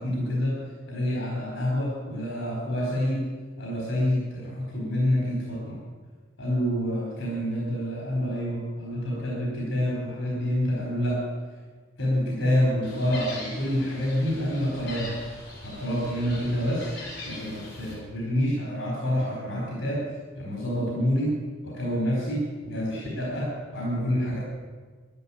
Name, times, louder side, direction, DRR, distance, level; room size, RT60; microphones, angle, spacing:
voice 1, 0.0-3.3 3.6-5.8 6.4-11.2 12.0-15.2 15.6-16.9 17.2-20.1 20.4-21.4 21.6-24.4, equal, 85° left, -4 dB, 4.4 m, -27 dB
Gull seagull, 12.8-17.9, left 2 dB, 65° left, 5.5 m, -41 dB
12.0 x 11.0 x 8.8 m, 1.4 s
head